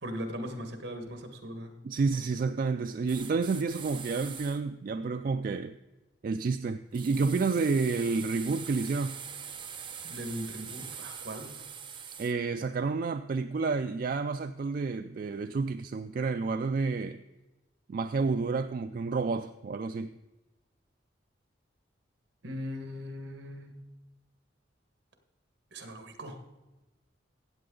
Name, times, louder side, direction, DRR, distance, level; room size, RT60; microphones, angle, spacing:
voice 1, 0.0-1.7 10.0-11.7 22.4-23.7 25.7-26.4, equal, 70° right, 6 dB, 1.6 m, -39 dB
voice 2, 1.8-5.8 6.2-9.2 12.2-17.2 17.9-20.1, right 4 dB, 50° right, 9 dB, 0.3 m, -30 dB
sound 1, 3.1-4.6 6.9-12.3, right 7 dB, 25° right, 0.8 m, -43 dB
14.5 x 8.6 x 3.8 m, 1.1 s
head